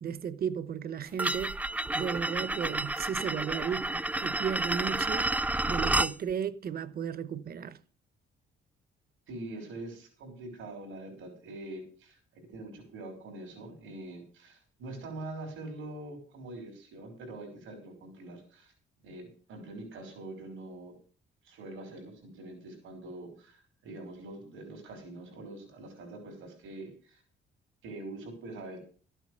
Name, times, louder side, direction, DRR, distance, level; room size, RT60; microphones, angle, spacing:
voice 1, 0.0-1.6 1.9-5.3 5.7-7.8, right 7 dB, 50° right, 1.0 m, -34 dB
sound 1, 1.2-6.1, right 2 dB, 5° right, 0.6 m, -30 dB
voice 2, 9.3-18.7 19.0-20.9 21.4-27.2 27.8-28.8, right 2 dB, 85° right, 5.4 m, -44 dB
13.5 x 8.9 x 6.7 m
cardioid pair, 90°, 20 cm